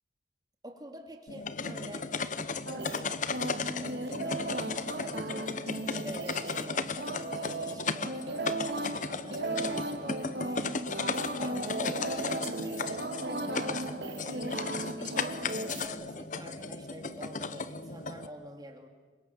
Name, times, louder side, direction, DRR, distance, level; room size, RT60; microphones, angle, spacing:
voice 1, 0.6-2.1 2.7-3.2 3.8-5.5 5.9-8.5 9.1-14.6 15.0-18.9, equal, 20° right, 4 dB, 2.7 m, -47 dB
sound 1, 1.3-18.3, left 4 dB, 45° left, 0.9 m, -36 dB
sound 2, 2.7-15.9, right 2 dB, 65° right, 2.4 m, -36 dB
28.0 x 24.0 x 7.3 m, 1.4 s
head